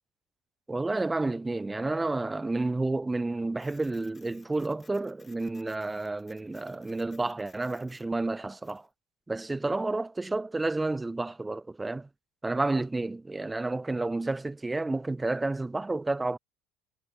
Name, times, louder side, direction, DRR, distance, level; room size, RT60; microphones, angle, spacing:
voice 1, 0.7-8.9 9.3-12.1 12.4-16.4, right 2 dB, 10° right, 0.5 m, -30 dB
Printer, 3.6-8.9, left 5 dB, 25° left, 1.8 m, -61 dB
supercardioid pair, 105°, 0 cm